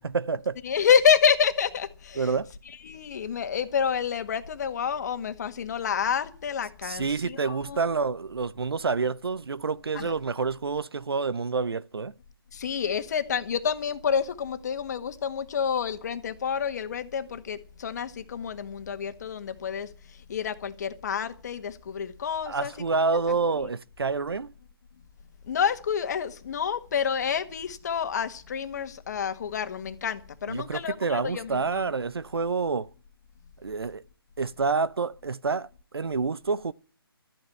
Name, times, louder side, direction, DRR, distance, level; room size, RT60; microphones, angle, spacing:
voice 1, 0.0-0.6 2.2-2.5 6.8-12.1 22.5-24.5 30.5-32.9 33.6-34.0 34.4-35.7 35.9-36.7, right 4 dB, 75° right, 0.7 m, -28 dB
voice 2, 0.6-2.3 2.8-7.8 9.9-10.1 12.5-19.9 20.3-22.7 23.1-23.2 25.5-31.9, left 7 dB, 45° left, 1.6 m, -28 dB
13.0 x 9.1 x 8.5 m
figure-of-eight pair, 150°, 13 cm